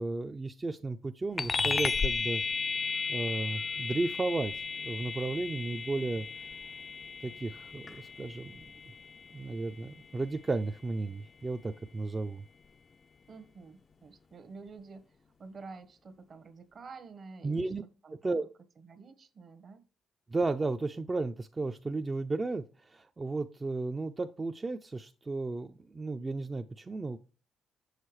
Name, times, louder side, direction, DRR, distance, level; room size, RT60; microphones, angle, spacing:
voice 1, 0.0-2.4 3.1-6.5 7.2-8.7 9.3-12.4 17.4-17.8 18.2-18.5 20.3-27.2, right 3 dB, 25° right, 6 dB, 0.4 m, -34 dB
sound 1, 1.4-11.2, left 4 dB, 35° left, 0.4 m, -35 dB
voice 2, 13.3-17.7 18.0-18.5 18.8-19.9, right 4 dB, 50° right, 11 dB, 1.0 m, -49 dB
6.8 x 6.5 x 3.1 m, 0.35 s
cardioid pair, 90°, 0 cm